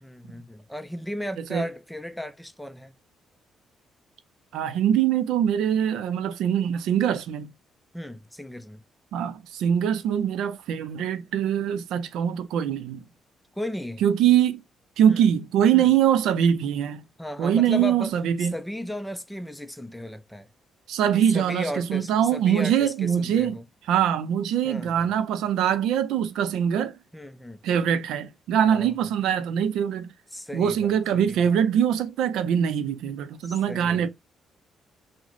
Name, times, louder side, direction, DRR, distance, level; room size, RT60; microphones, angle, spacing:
voice 1, 0.0-2.9 7.9-8.8 13.6-14.0 15.1-15.2 15.7-15.9 17.2-18.1 18.4-20.5 21.1-23.7 24.6-25.1 27.1-27.6 28.7-29.0 30.3-31.4 33.4-34.1, left 1 dB, 5° left, 0.4 m, -35 dB
voice 2, 4.5-7.5 9.1-13.0 14.0-14.6 15.0-17.0 17.4-18.5 20.9-23.6 23.9-27.0 27.6-30.1 30.5-34.1, right 9 dB, 85° right, 0.4 m, -23 dB
3.6 x 2.0 x 3.0 m
cardioid pair, 90°, 0 cm